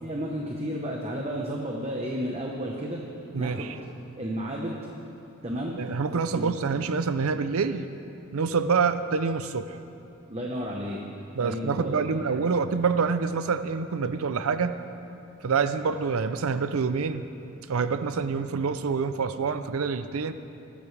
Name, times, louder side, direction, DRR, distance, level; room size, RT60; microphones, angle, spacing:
voice 1, 0.0-3.0 3.4-3.7 4.2-4.8 5.4-5.8 6.3-6.5 10.3-11.0 11.4-11.9 12.2-12.4, equal, 30° right, -1 dB, 1.0 m, -32 dB
voice 2, 3.3-3.7 5.8-7.9 8.3-9.8 11.4-14.7 15.4-17.2 17.7-20.3, right 5 dB, 80° right, 11 dB, 0.5 m, -26 dB
20.5 x 13.5 x 3.4 m, 2.8 s
head